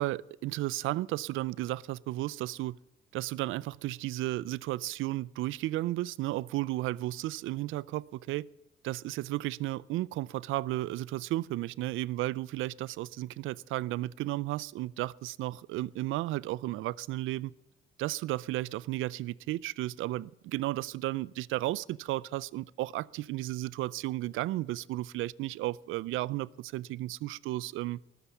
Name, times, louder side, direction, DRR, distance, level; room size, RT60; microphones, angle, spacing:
voice 1, 0.0-2.8 3.1-8.5 8.8-17.5 18.0-28.0, right 16 dB, 85° right, 0.4 m, -33 dB
20.0 x 6.9 x 7.1 m
cardioid pair, 90°, 20 cm